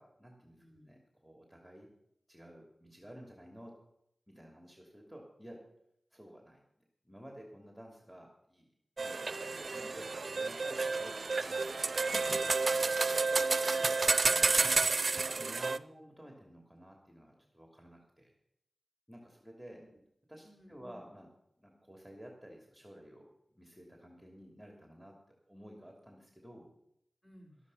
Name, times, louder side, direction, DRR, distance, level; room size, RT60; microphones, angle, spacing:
voice 1, 0.0-0.6 0.8-1.9 2.3-3.7 4.3-5.6 6.1-6.6 7.0-8.7 9.0-11.6 12.3-13.6 15.4-18.3 19.1-19.8 20.3-21.3 21.6-25.1 25.5-26.7, equal, ahead, 1 dB, 2.9 m, -53 dB
voice 2, 0.6-0.9 14.2-15.1 19.7-19.9 20.4-21.0 27.2-27.6, equal, 30° left, 0 dB, 4.5 m, -58 dB
sound 1, 9.0-15.8, right 4 dB, 65° right, 0.5 m, -30 dB
13.0 x 12.5 x 5.6 m, 0.76 s
cardioid pair, 50°, 0 cm